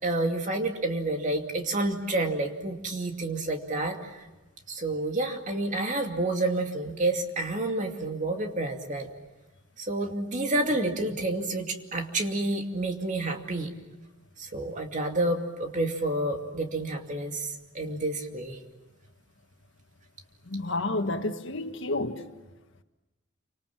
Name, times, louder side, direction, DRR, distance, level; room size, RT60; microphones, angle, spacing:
voice 1, 0.0-4.2 4.7-9.1 9.8-13.7 14.4-18.6, right 2 dB, 40° right, 2.5 m, -29 dB
voice 2, 20.5-22.2, left 2 dB, 65° left, 1.7 m, -30 dB
29.0 x 25.5 x 7.5 m
head